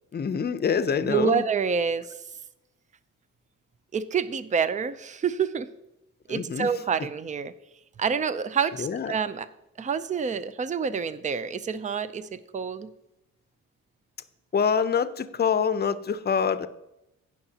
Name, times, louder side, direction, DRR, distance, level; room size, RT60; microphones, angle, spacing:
voice 1, 0.1-1.4 6.3-6.7 8.8-9.1 14.5-16.7, left 6 dB, 35° left, 12 dB, 0.6 m, -25 dB
voice 2, 1.0-2.1 3.9-5.7 6.3-7.5 8.0-9.5 9.8-12.9, right 6 dB, 25° right, 14 dB, 0.5 m, -27 dB
16.5 x 5.9 x 2.9 m, 0.89 s
cardioid pair, 90°, 30 cm